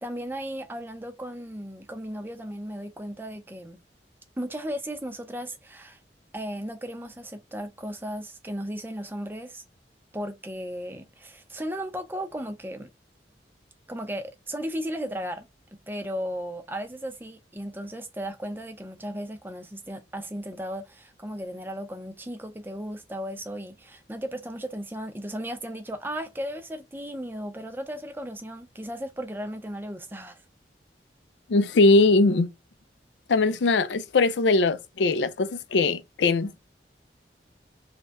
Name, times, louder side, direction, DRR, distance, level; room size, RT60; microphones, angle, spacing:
voice 1, 0.0-3.8 4.4-6.0 6.3-9.6 10.1-12.9 13.9-15.4 15.9-30.4, equal, 10° right, 0.5 m, -35 dB
voice 2, 31.5-32.5 33.3-36.6, left 3 dB, 85° left, 0.5 m, -21 dB
3.1 x 2.8 x 3.1 m
head